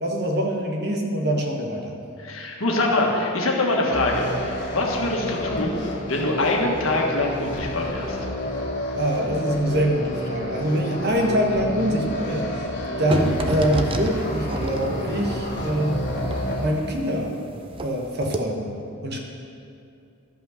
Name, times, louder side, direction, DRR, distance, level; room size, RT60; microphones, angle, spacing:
voice 1, 0.0-1.9 9.0-12.7 13.0-16.0 16.6-17.4 17.8-18.7 19.0-19.2, equal, 50° right, 1 dB, 1.2 m, -24 dB
voice 2, 2.2-8.2, left 2 dB, 75° left, 0 dB, 1.5 m, -24 dB
sound 1, 3.9-16.7, equal, 50° left, 1.3 m, -30 dB
sound 2, 13.1-17.9 18.2-18.4, right 2 dB, 25° right, 0.5 m, -30 dB
12.0 x 5.6 x 6.4 m, 2.5 s
head